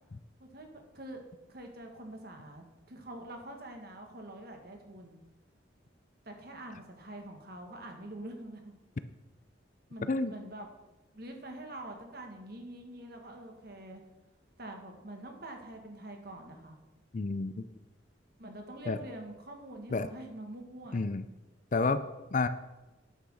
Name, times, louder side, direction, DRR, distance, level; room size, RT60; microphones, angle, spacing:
voice 1, 0.4-1.2 1.5-5.2 6.2-8.7 9.9-10.7 11.1-14.0 14.6-16.8 18.4-21.0, right 1 dB, 55° right, 4 dB, 1.6 m, -45 dB
voice 2, 17.1-17.6 18.9-19.0 19.9-20.1 20.9-21.2 21.7-22.0 22.3-22.5, left 3 dB, 40° left, 12 dB, 0.5 m, -29 dB
10.0 x 6.1 x 6.4 m, 1.0 s
head